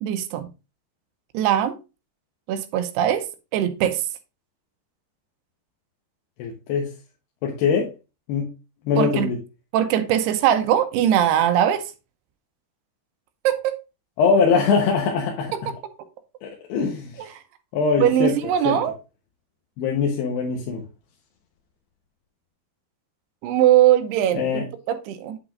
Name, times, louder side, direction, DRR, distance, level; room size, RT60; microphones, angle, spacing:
voice 1, 0.0-0.5 1.3-1.8 2.5-3.2 3.5-4.0 9.0-9.3 9.7-11.8 13.4-13.8 17.2-17.3 18.0-19.0 23.4-25.4, right 11 dB, 90° right, 2.8 m, -21 dB
voice 2, 6.4-6.9 7.4-7.9 8.3-8.5 8.9-9.4 14.2-15.7 16.4-17.2 17.7-18.4 18.6-18.8 19.8-20.8 24.3-24.7, left 5 dB, 85° left, 3.1 m, -22 dB
8.2 x 7.9 x 2.5 m
omnidirectional pair, 4.7 m